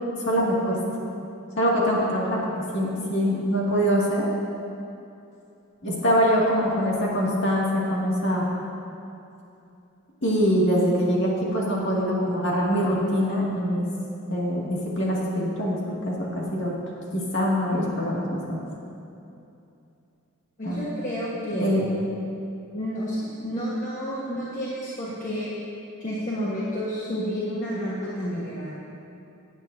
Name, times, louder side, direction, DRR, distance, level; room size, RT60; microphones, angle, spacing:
voice 1, 0.2-0.8 1.6-2.4 2.7-4.2 5.8-8.5 10.2-13.9 14.3-16.7 17.1-18.6 20.6-20.8 21.5-21.8, equal, 55° left, -5 dB, 2.2 m, -24 dB
voice 2, 20.6-21.9 22.7-25.5 26.0-28.8, equal, 35° left, -8 dB, 1.3 m, -30 dB
18.0 x 9.0 x 2.7 m, 2.7 s
head